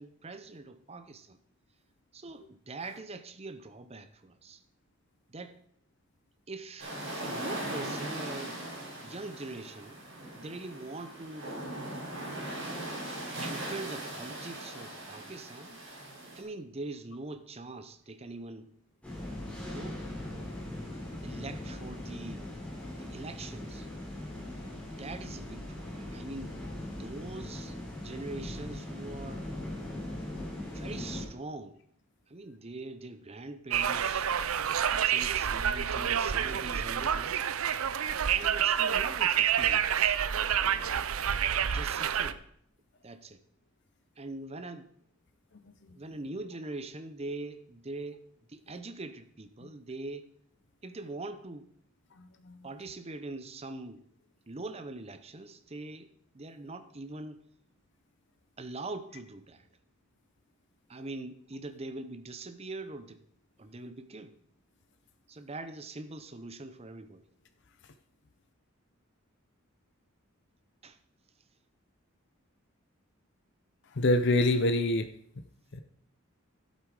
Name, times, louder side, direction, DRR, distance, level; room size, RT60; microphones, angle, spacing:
voice 1, 0.0-1.4 2.1-4.6 5.3-5.6 6.5-8.7 9.0-10.0 10.3-11.5 13.4-15.8 16.3-18.7 19.6-20.0 21.2-22.5 23.0-23.9 25.0-26.6 27.0-29.4 30.6-31.8 32.3-34.3 35.0-37.4 38.3-40.2 40.5-41.1 41.6-42.4 43.0-43.4 44.2-44.9 45.9-50.3 50.8-51.7 52.6-54.0 54.5-57.4 58.6-59.6 60.9-63.2 63.6-64.4 65.3-67.2 70.8-71.0, right 2 dB, 30° right, 0.8 m, -43 dB
sound 1, 6.8-16.4, right 1 dB, 60° right, 4.8 m, -39 dB
sound 2, 19.0-31.2, left 1 dB, 5° left, 4.1 m, -40 dB
Conversation, 33.7-42.3, right 9 dB, 85° right, 0.6 m, -28 dB
voice 2, 52.2-52.6 73.9-75.1 75.7-75.8, left 2 dB, 55° left, 0.6 m, -26 dB
11.5 x 8.3 x 4.9 m
head